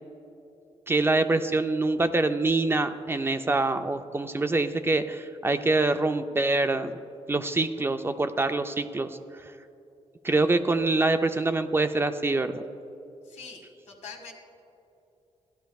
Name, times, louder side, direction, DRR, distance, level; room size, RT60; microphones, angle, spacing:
voice 1, 0.9-6.9 7.3-9.2 10.2-12.6, right 2 dB, 20° right, 8 dB, 0.4 m, -25 dB
voice 2, 13.2-14.3, left 5 dB, 80° left, 1 dB, 1.8 m, -44 dB
16.0 x 11.5 x 2.3 m, 2.8 s
cardioid pair, 135°, 12 cm